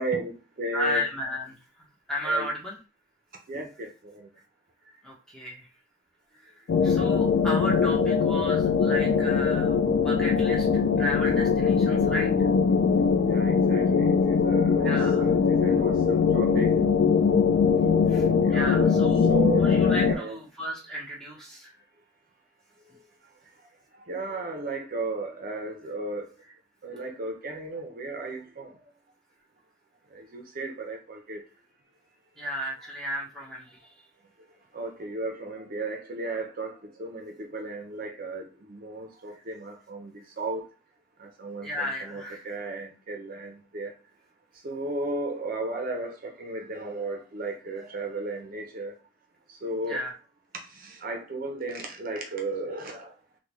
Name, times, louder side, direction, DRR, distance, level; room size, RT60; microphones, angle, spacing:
voice 1, 0.0-1.0 2.2-2.5 3.5-4.3 13.2-16.7 18.4-19.7 20.1-20.4 24.1-26.3 26.8-28.8 30.1-31.4 34.7-40.7 41.2-43.9 44.6-48.9 49.6-50.1 50.7-53.1, right 2 dB, 50° right, 0.6 m, -34 dB
voice 2, 0.7-2.8 5.0-5.7 6.3-12.5 14.8-15.2 18.1-19.3 19.6-21.7 26.9-27.0 32.4-33.9 41.6-42.5 49.9-50.1, equal, 5° left, 0.9 m, -34 dB
sound 1, 6.7-20.2, left 6 dB, 65° left, 0.3 m, -22 dB
3.5 x 2.2 x 3.0 m
head